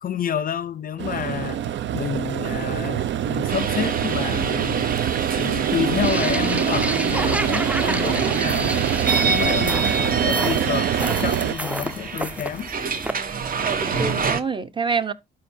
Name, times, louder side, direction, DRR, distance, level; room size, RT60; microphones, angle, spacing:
voice 1, 0.0-1.6 1.9-4.9 5.4-8.9 9.2-12.7 13.9-14.3, left 8 dB, 45° left, 0.5 m, -29 dB
sound 1, 1.0-11.5, right 10 dB, 65° right, 0.6 m, -24 dB
sound 2, 3.5-14.4, right 5 dB, 45° right, 1.1 m, -27 dB
sound 3, 6.0-13.1, right 1 dB, 5° right, 0.4 m, -30 dB
voice 2, 9.0-9.4 13.0-15.1, right 5 dB, 25° right, 0.8 m, -28 dB
12.0 x 4.8 x 2.7 m
cardioid pair, 90°, 20 cm